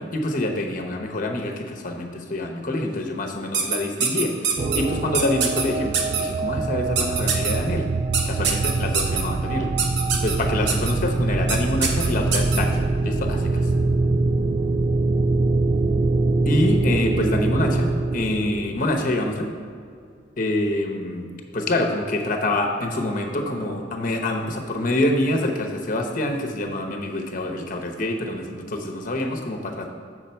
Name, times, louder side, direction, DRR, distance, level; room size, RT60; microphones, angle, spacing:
voice 1, 0.0-7.9 8.3-9.7 10.2-12.8 13.0-13.7 16.5-19.5 20.4-21.2 21.5-29.9, left 1 dB, 50° left, 3 dB, 0.9 m, -26 dB
sound 1, 3.5-4.8 5.1-5.6 5.9-6.2 7.0-7.5 8.1-9.2 9.8-10.4 10.7-10.9 11.5-11.6 11.8-12.6, right 6 dB, 75° right, 0.9 m, -23 dB
sound 2, 4.6-19.4 22.7-22.8 23.0-23.6, right 3 dB, 30° right, 0.3 m, -24 dB
8.1 x 6.2 x 4.4 m, 2.2 s
head